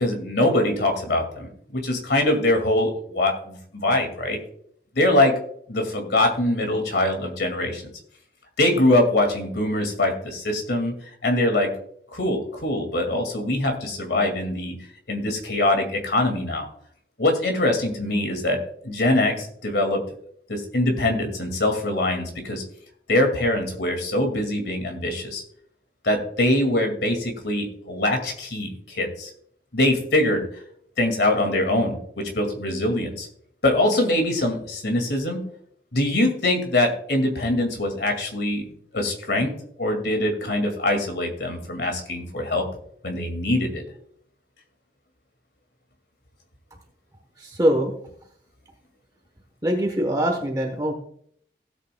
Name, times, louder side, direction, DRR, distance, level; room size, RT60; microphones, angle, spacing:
voice 1, 0.0-4.4 5.0-5.4 5.7-7.8 8.6-10.9 11.2-11.7 12.1-14.8 15.1-16.7 17.2-20.0 20.5-22.6 23.1-25.4 26.0-29.3 29.7-30.5 31.0-33.3 33.6-35.4 35.9-38.7 38.9-39.5 39.8-42.6 43.0-43.8, left 1 dB, 70° left, 4 dB, 2.2 m, -23 dB
voice 2, 47.4-47.9 49.6-50.9, equal, 20° right, 3 dB, 1.1 m, -23 dB
17.0 x 8.3 x 2.3 m, 0.65 s
head